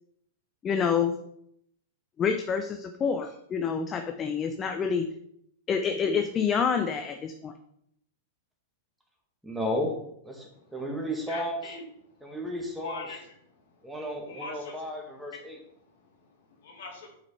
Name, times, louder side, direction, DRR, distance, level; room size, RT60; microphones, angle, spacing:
voice 1, 0.6-1.2 2.2-5.1 5.7-7.5, left 6 dB, 25° left, 6 dB, 0.6 m, -27 dB
voice 2, 9.4-9.9 10.2-11.6 12.2-13.0 13.8-15.6, equal, ahead, -1 dB, 1.8 m, -33 dB
voice 3, 11.3-12.2 12.8-13.2 13.5-13.9 14.2-14.8 15.8-17.1, left 3 dB, 70° left, 1 dB, 1.9 m, -43 dB
8.5 x 4.9 x 3.3 m, 0.73 s
hypercardioid pair, 110°, 0 cm